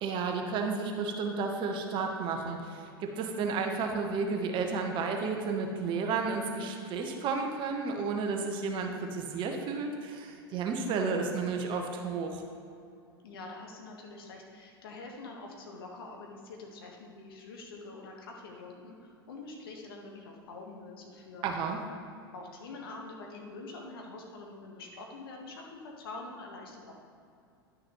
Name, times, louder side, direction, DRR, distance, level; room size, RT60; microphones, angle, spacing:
voice 1, 0.0-12.4 21.4-21.8, right 4 dB, 40° right, 3 dB, 1.1 m, -32 dB
voice 2, 13.2-21.5 22.3-26.9, left 3 dB, 70° left, 0 dB, 1.4 m, -45 dB
10.5 x 6.4 x 3.1 m, 2.5 s
hypercardioid pair, 90°, 13 cm